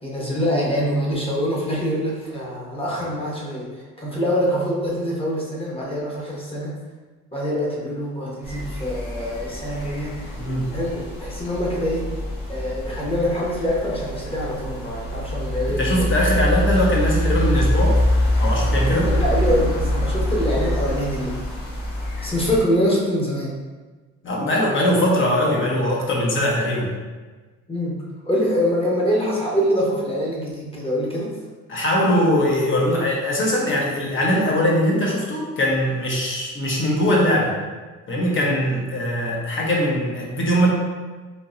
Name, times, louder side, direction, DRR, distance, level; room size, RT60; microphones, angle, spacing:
voice 1, 0.0-3.7 4.0-6.7 7.3-10.1 10.7-12.1 12.5-16.0 19.1-21.4 22.2-23.5 27.7-27.9 28.2-31.3, equal, 20° left, -4 dB, 1.1 m, -24 dB
sound 1, 8.4-22.6, equal, 80° left, 1.4 m, -24 dB
voice 2, 10.4-10.7 15.8-18.0 18.4-19.1 24.2-26.9 31.7-37.5 38.1-40.7, equal, 40° left, -3 dB, 1.1 m, -21 dB
3.6 x 2.9 x 2.6 m, 1.3 s
supercardioid pair, 75°, 30 cm